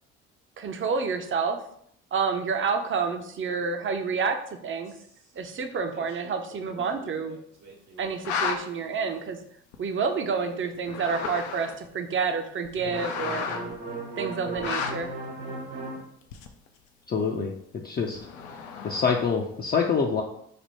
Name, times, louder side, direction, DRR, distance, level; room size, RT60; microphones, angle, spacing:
voice 1, 0.6-1.6 2.1-4.9 5.4-7.4 8.0-9.4 9.8-13.5 14.2-15.1, right 5 dB, 35° right, 7 dB, 0.6 m, -29 dB
sound 1, 4.9-5.1 5.3-5.4 5.9-9.0 10.3-10.8 12.8-16.0, right 2 dB, 70° right, 1.1 m, -38 dB
sound 2, 8.0-8.6 9.7-9.8 10.7-11.9 12.6-13.7 14.6-15.1 16.3-16.7 18.1-19.3, left 6 dB, 80° left, 0.5 m, -32 dB
voice 2, 17.1-17.5 17.8-18.2 18.8-20.2, left 5 dB, 25° left, 1 dB, 0.5 m, -25 dB
3.4 x 2.1 x 4.2 m, 0.69 s
hypercardioid pair, 55°, 37 cm